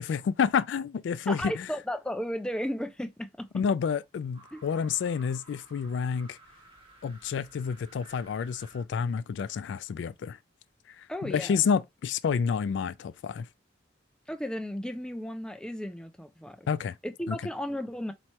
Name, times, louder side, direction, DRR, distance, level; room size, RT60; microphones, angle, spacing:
voice 1, 0.0-1.7 3.5-6.4 7.0-10.4 10.9-13.5 16.7-17.0 17.3-17.4, left 6 dB, 75° left, 0.3 m, -29 dB
voice 2, 1.3-3.5 4.5-4.6 11.1-11.6 14.3-16.7 17.0-18.1, equal, 5° left, 0.4 m, -34 dB
sound 1, 4.3-8.8, right 2 dB, 30° right, 1.3 m, -55 dB
3.1 x 2.8 x 4.4 m
head